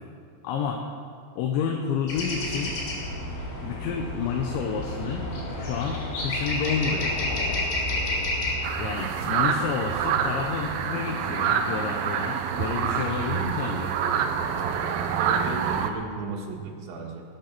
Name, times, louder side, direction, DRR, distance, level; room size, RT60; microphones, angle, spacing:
voice 1, 0.4-1.0 1.4-2.8 3.6-7.2 8.8-14.0, left 6 dB, 80° left, 2 dB, 3.1 m, -30 dB
sound 1, 2.1-8.6, left 1 dB, 55° left, 4.4 m, -30 dB
sound 2, 8.6-15.9, right 7 dB, 90° right, 2.1 m, -27 dB
voice 2, 14.9-17.2, right 4 dB, 75° right, -1 dB, 4.0 m, -35 dB
20.0 x 9.3 x 6.0 m, 2.2 s
omnidirectional pair, 5.4 m